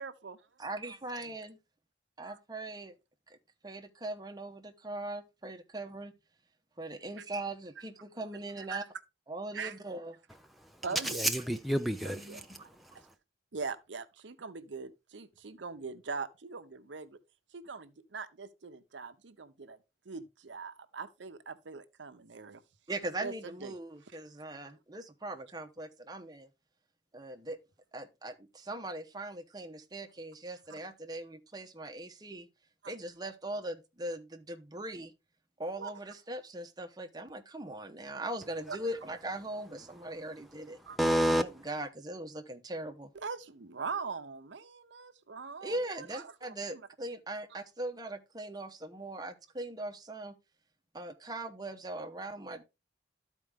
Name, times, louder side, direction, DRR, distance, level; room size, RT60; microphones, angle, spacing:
voice 1, 0.0-0.4 2.2-2.4 7.2-7.3 8.6-8.8 9.5-9.8 10.8-11.2 12.0-12.4 12.9-13.1 13.5-17.2 17.5-19.8 20.1-22.6 23.2-23.7 32.8-32.9 35.8-35.9 38.7-38.9 40.9-41.0 43.1-46.9, right 5 dB, 75° right, 0.7 m, -42 dB
voice 2, 0.6-1.6 2.2-2.9 3.3-3.4 3.6-6.1 6.8-8.8 9.3-10.1 12.1-12.4 22.9-26.5 27.1-27.6 27.9-32.5 32.9-35.1 35.6-40.8 41.4-43.1 45.6-50.4 50.9-52.6, right 1 dB, 20° right, 0.8 m, -40 dB
voice 3, 11.0-12.4 12.8-13.0 41.0-41.4, equal, ahead, 0.4 m, -29 dB
12.5 x 4.5 x 3.5 m
head